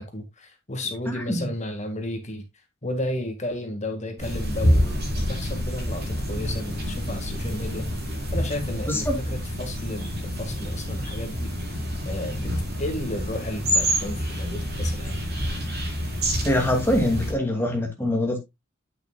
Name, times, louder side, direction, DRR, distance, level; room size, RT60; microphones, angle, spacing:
voice 1, 0.0-2.4 2.8-7.9 8.3-11.5 12.0-12.5 12.8-15.2, left 1 dB, 35° left, 1.9 m, -33 dB
voice 2, 1.1-1.5 8.9-9.2 16.4-18.4, left 1 dB, 10° left, 2.5 m, -24 dB
sound 1, 4.2-17.3, equal, 50° right, 4.4 m, -27 dB
8.9 x 8.1 x 2.3 m
head